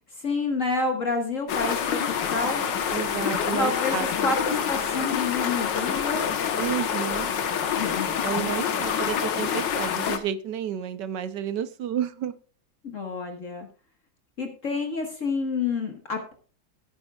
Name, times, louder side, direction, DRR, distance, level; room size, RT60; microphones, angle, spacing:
voice 1, 0.1-2.0 2.3-2.7 3.6-6.3 7.6-8.2 12.8-13.7 14.4-16.3, left 4 dB, 45° left, 3 dB, 1.8 m, -29 dB
sound 1, 1.5-10.2, left 7 dB, 75° left, 1.8 m, -27 dB
voice 2, 2.9-4.3 6.6-7.3 8.2-12.3, right 9 dB, 70° right, 13 dB, 1.4 m, -31 dB
17.0 x 9.6 x 2.4 m, 0.39 s
omnidirectional pair, 2.0 m